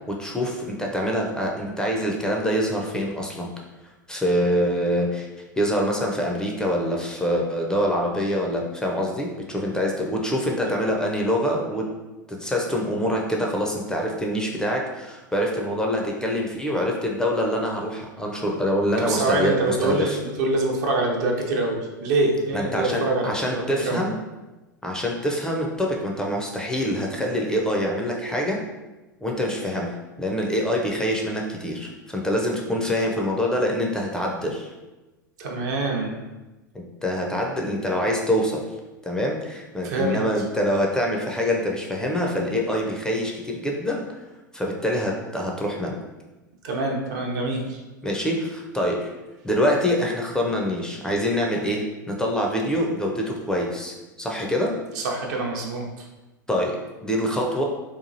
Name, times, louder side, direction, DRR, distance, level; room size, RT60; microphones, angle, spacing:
voice 1, 0.1-3.5 4.1-11.9 12.3-20.2 22.5-24.2 24.8-28.6 29.2-34.7 36.7-38.6 39.0-44.0 44.5-46.0 48.0-49.1 49.4-54.8 56.5-57.6, equal, 5° left, -1 dB, 0.4 m, -25 dB
voice 2, 19.0-24.0 35.4-36.2 39.8-40.2 46.6-47.8 54.9-56.1, right 2 dB, 60° right, 0 dB, 0.6 m, -25 dB
2.8 x 2.3 x 2.6 m, 1.1 s
figure-of-eight pair, 90°, 11 cm